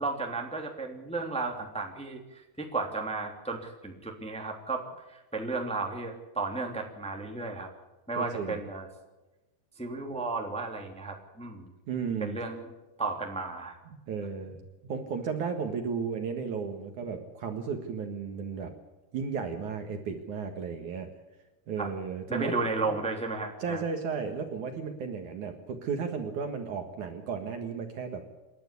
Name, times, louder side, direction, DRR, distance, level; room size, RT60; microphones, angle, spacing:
voice 1, 0.0-4.8 5.1-7.7 8.1-8.9 9.8-11.7 12.2-12.6 13.0-13.8 21.8-21.9 22.3-23.8, right 3 dB, ahead, 2 dB, 2.3 m, -34 dB
voice 2, 8.2-8.6 11.9-12.4 14.0-18.7 19.1-21.1 21.7-22.5 23.6-28.2, right 6 dB, 60° right, 5 dB, 2.7 m, -34 dB
28.5 x 12.0 x 8.4 m, 1.1 s
omnidirectional pair, 4.6 m